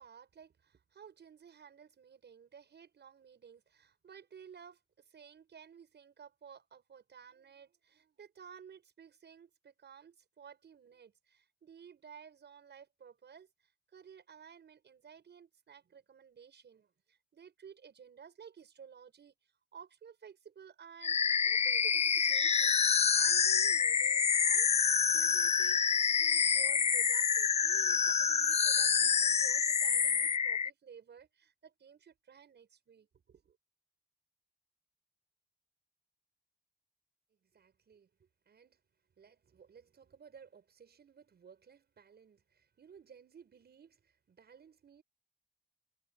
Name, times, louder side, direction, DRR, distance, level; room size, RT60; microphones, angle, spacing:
voice 1, 0.0-21.2 21.5-25.8 26.1-33.6, right 7 dB, 90° right, 7.3 m, -55 dB
sound 1, 21.0-30.7, left 6 dB, 40° left, 0.4 m, -27 dB
voice 2, 37.5-38.8 39.2-45.0, right 7 dB, 70° right, 6.9 m, -59 dB
wide cardioid pair, 170°, 17 cm